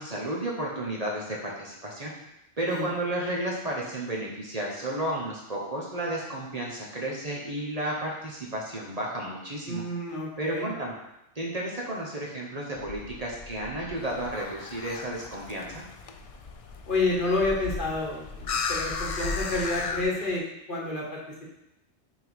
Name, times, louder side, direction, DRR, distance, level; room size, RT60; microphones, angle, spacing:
voice 1, 0.0-2.1 2.6-9.8 10.4-10.9 11.3-15.8, right 1 dB, 35° right, -3 dB, 1.0 m, -32 dB
voice 2, 9.7-10.7 16.9-21.2, left 2 dB, 50° left, -2 dB, 1.3 m, -29 dB
sound 1, 12.7-20.0, left 3 dB, 85° left, 1.0 m, -41 dB
sound 2, 14.0-20.4, left 5 dB, 70° left, 0.3 m, -36 dB
5.9 x 3.7 x 4.6 m, 0.85 s
omnidirectional pair, 1.2 m